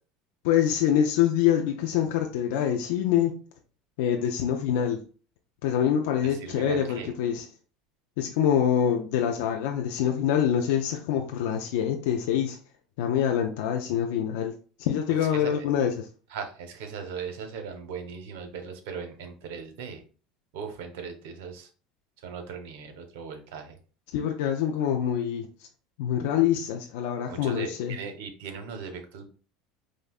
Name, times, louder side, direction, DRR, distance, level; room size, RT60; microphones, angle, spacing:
voice 1, 0.4-3.3 4.0-5.0 5.6-7.5 8.2-12.6 13.0-14.5 14.8-16.1 24.1-25.5 26.0-28.0, left 9 dB, 75° left, 0.4 m, -25 dB
voice 2, 6.4-7.1 15.3-15.7 16.3-20.0 20.5-21.7 22.2-23.8 27.3-29.3, right 6 dB, 75° right, 0.8 m, -38 dB
5.0 x 2.1 x 2.4 m
supercardioid pair, 95°, 0 cm